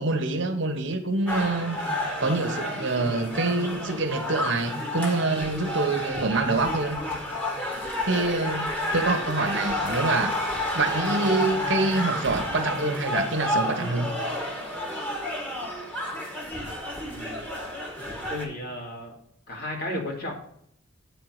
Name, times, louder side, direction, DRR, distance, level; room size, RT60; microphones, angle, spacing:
voice 1, 0.0-1.8 2.2-7.0 8.0-10.3 10.7-14.1, right 3 dB, 60° right, 1.2 m, -26 dB
sound 1, 1.3-18.4, left 1 dB, 10° left, 1.7 m, -30 dB
voice 2, 17.0-17.4 18.3-19.1 19.5-20.4, left 1 dB, 50° left, 2.7 m, -34 dB
8.8 x 4.6 x 6.5 m
head